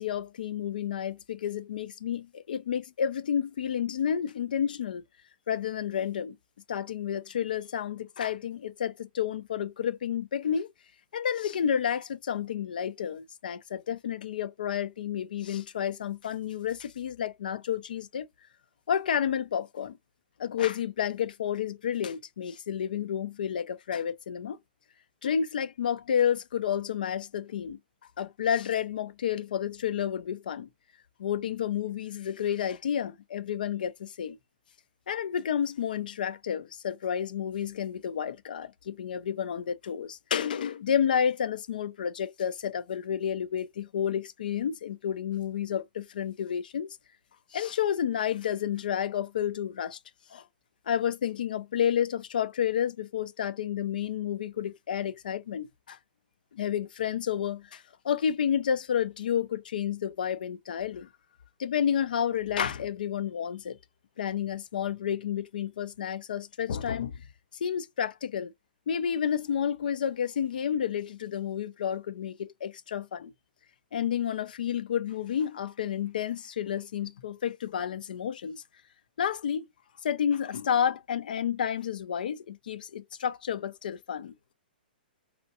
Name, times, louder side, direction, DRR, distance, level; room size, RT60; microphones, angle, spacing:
voice 1, 0.0-5.0 5.5-6.4 6.7-10.7 11.1-18.3 18.9-20.0 20.4-24.6 25.2-27.8 28.2-30.7 31.2-34.4 35.1-47.0 47.5-50.0 50.3-50.4 50.9-56.0 56.5-61.1 61.6-63.8 64.2-67.2 67.6-68.5 68.9-73.3 73.9-78.6 79.2-79.7 80.0-84.3, left 8 dB, 60° left, 0.5 m, -30 dB
4.4 x 2.4 x 2.4 m
figure-of-eight pair, 115°, 5 cm